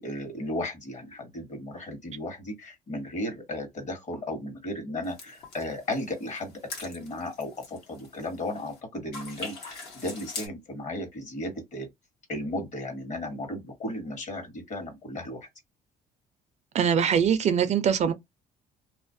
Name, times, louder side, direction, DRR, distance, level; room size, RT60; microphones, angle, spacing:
voice 1, 0.0-6.5 6.8-11.9 12.3-15.5, left 1 dB, 45° left, 1.1 m, -35 dB
sound 1, 5.0-8.8 9.1-10.5, left 3 dB, 80° left, 1.1 m, -43 dB
voice 2, 16.7-18.1, right 7 dB, 45° right, 0.4 m, -22 dB
2.3 x 2.0 x 2.5 m
cardioid pair, 110°, 17 cm